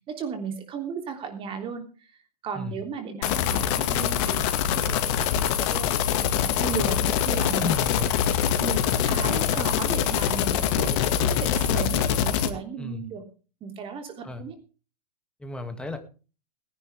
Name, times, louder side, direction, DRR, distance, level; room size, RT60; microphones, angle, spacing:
voice 1, 0.1-1.8 2.4-7.7 8.3-13.2 13.6-14.6, right 6 dB, 25° right, 6 dB, 3.3 m, -35 dB
sound 1, 3.2-12.5, left 9 dB, 50° left, 2.1 m, -24 dB
voice 2, 7.6-8.3 12.8-13.1 14.2-14.4 15.4-16.0, left 3 dB, 5° left, 6 dB, 2.5 m, -33 dB
20.5 x 11.0 x 3.6 m, 0.35 s
hypercardioid pair, 125°, 20 cm